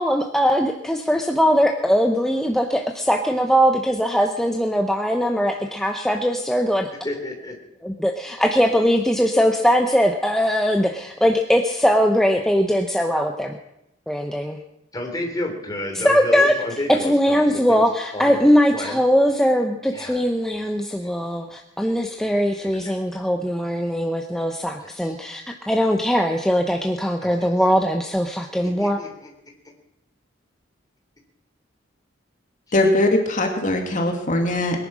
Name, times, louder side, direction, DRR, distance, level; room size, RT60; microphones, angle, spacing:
voice 1, 0.0-6.9 7.8-13.5 14.1-14.6 15.9-16.6 16.9-29.0, equal, 5° left, 3 dB, 0.9 m, -20 dB
voice 2, 7.0-7.5 14.9-17.8 18.1-19.0 19.9-20.2 21.0-21.1 22.6-23.2 24.8-25.2 27.2-27.5 28.8-29.3, left 1 dB, 20° left, 1 dB, 3.4 m, -31 dB
voice 3, 32.7-34.8, left 1 dB, 40° left, 3 dB, 2.2 m, -20 dB
22.0 x 10.5 x 6.2 m, 0.83 s
head